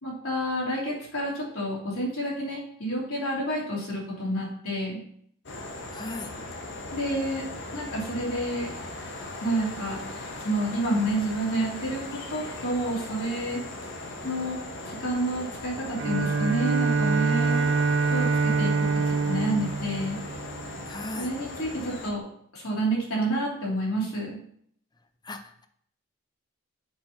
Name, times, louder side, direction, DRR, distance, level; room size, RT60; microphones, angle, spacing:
voice 1, 0.0-5.0 6.9-7.4 7.7-8.7 9.4-10.0 10.4-13.6 14.2-14.6 14.9-17.6 18.1-20.2 21.2-22.2 22.5-24.4, right 1 dB, 80° left, -5 dB, 2.8 m, -29 dB
sound 1, 5.5-22.1, left 2 dB, 55° left, 1.0 m, -39 dB
voice 2, 5.9-6.3 20.9-21.3 25.2-25.7, left 2 dB, 20° left, 7 dB, 0.5 m, -37 dB
Bowed string instrument, 16.0-21.1, right 4 dB, 55° right, 0.4 m, -25 dB
7.7 x 2.9 x 5.6 m, 0.65 s
head